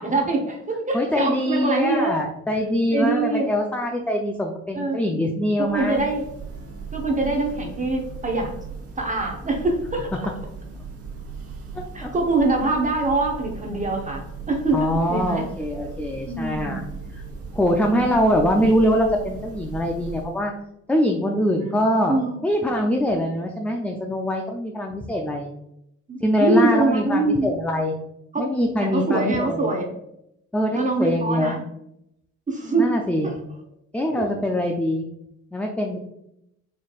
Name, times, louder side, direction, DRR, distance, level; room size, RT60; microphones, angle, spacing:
voice 1, 0.0-2.2 2.9-3.5 4.7-5.0 5.6-6.2 6.9-8.5 9.0-10.3 11.9-15.5 16.3-16.8 17.8-18.3 21.6-21.8 22.1-22.4 26.1-27.5 28.3-28.5 28.8-29.9 30.7-31.6 32.5-32.9 33.2-33.3, right 2 dB, 25° right, 1 dB, 0.8 m, -24 dB
voice 2, 0.9-6.0 11.7-12.1 14.7-16.8 17.1-17.2 17.5-20.5 20.9-22.2 22.4-25.5 26.2-28.0 28.4-29.8 30.5-31.6 32.8-33.3 33.9-35.1 35.5-36.0, equal, 5° left, 1 dB, 0.4 m, -23 dB
Church bell, 5.6-20.5, right 5 dB, 50° right, 1.0 m, -37 dB
4.2 x 3.1 x 2.3 m, 0.78 s
cardioid pair, 90°, 30 cm